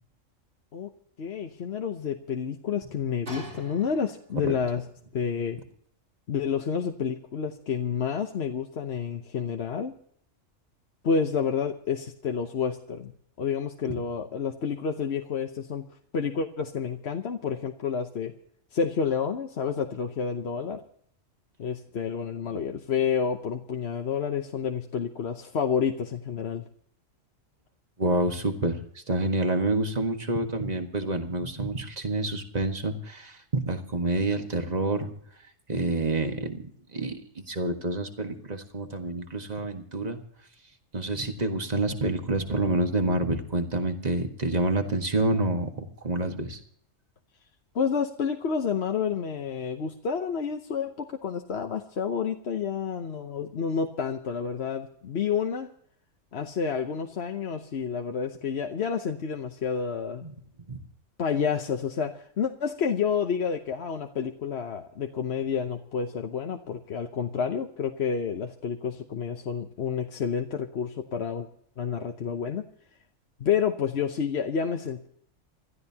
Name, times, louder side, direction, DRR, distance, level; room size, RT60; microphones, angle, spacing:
voice 1, 1.2-4.8 5.1-5.6 6.3-9.9 11.0-13.1 13.4-15.9 16.1-18.3 18.7-20.8 21.6-26.6 47.7-55.7 56.3-60.2 61.2-71.5 71.8-72.6 73.4-75.1, left 6 dB, 55° left, 4 dB, 1.1 m, -29 dB
sound 1, 3.2-4.5 5.3-5.4, equal, 55° right, 3.5 m, -41 dB
voice 2, 28.0-28.8 29.1-35.1 35.7-36.6 36.9-40.2 40.9-46.6 60.2-60.3 60.7-60.8, right 2 dB, 30° right, 5 dB, 1.7 m, -28 dB
28.0 x 13.0 x 2.9 m, 0.63 s
omnidirectional pair, 1.3 m